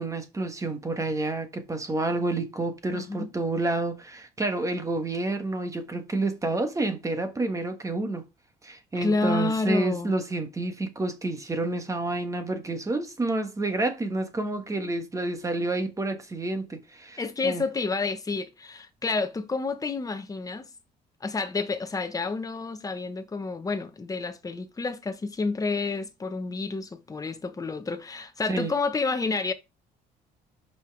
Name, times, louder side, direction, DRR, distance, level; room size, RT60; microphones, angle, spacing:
voice 1, 0.0-8.3 8.6-17.6 28.5-28.7, right 2 dB, 20° right, 1.3 m, -29 dB
voice 2, 2.9-3.3 8.9-10.1 17.2-20.7 21.2-29.5, left 3 dB, 20° left, 1.1 m, -29 dB
5.5 x 5.5 x 4.6 m
cardioid pair, 110°, 17 cm